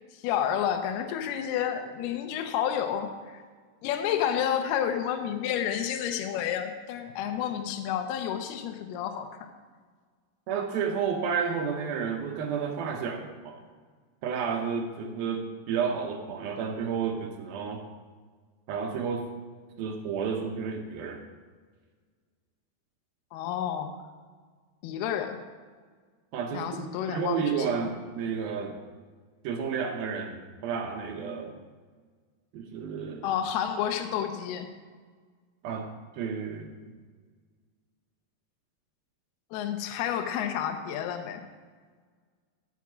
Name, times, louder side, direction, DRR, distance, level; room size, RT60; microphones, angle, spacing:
voice 1, 0.0-3.4 3.8-9.5 23.3-24.0 24.8-25.4 26.5-27.9 33.2-34.7 39.5-41.4, left 9 dB, 75° left, 5 dB, 2.7 m, -30 dB
voice 2, 10.5-13.6 14.2-17.8 18.7-19.3 19.8-21.2 26.3-28.8 29.4-31.6 32.5-33.3 35.6-35.9 36.2-36.9, right 6 dB, 75° right, 3 dB, 2.3 m, -31 dB
14.5 x 5.9 x 6.1 m, 1.5 s
omnidirectional pair, 5.0 m